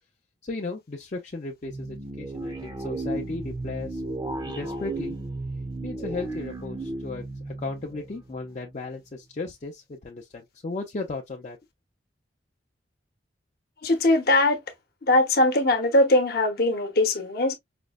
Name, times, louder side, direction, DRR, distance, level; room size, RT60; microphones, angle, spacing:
voice 1, 0.4-4.0 4.4-5.2 5.8-11.6, left 3 dB, 40° left, 0.5 m, -35 dB
sound 1, 1.6-8.8, right 2 dB, 20° right, 0.6 m, -34 dB
voice 2, 13.8-14.6 15.0-17.6, left 2 dB, 55° left, 0.9 m, -21 dB
5.0 x 2.1 x 2.2 m
head